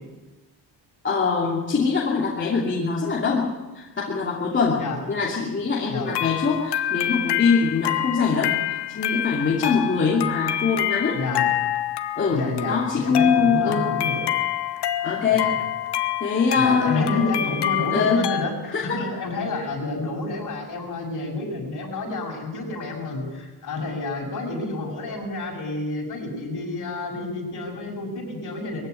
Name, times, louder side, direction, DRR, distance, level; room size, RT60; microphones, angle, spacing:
voice 1, 1.0-4.8 5.1-11.2 12.2-13.9 15.0-15.6 16.2-17.5 17.9-18.2 18.7-19.0, left 5 dB, 25° left, -4 dB, 2.7 m, -23 dB
sound 1, 6.1-18.4, left 12 dB, 65° left, 1.2 m, -27 dB
voice 2, 11.1-11.5 12.3-14.2 15.3-15.6 16.5-28.9, left 2 dB, 45° left, 0 dB, 7.2 m, -30 dB
21.5 x 16.0 x 9.8 m, 1.1 s
cardioid pair, 175°, 44 cm